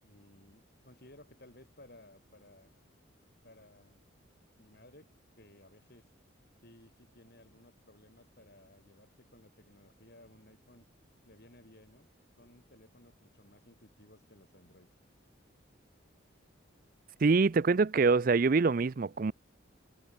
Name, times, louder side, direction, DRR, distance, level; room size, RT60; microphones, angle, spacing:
voice 1, 0.0-2.7 3.4-4.0 4.6-6.0 6.6-10.9 11.2-12.1 12.4-14.9, left 1 dB, 50° left, 4.6 m, -58 dB
voice 2, 17.2-19.3, right 4 dB, 45° right, 0.4 m, -25 dB
head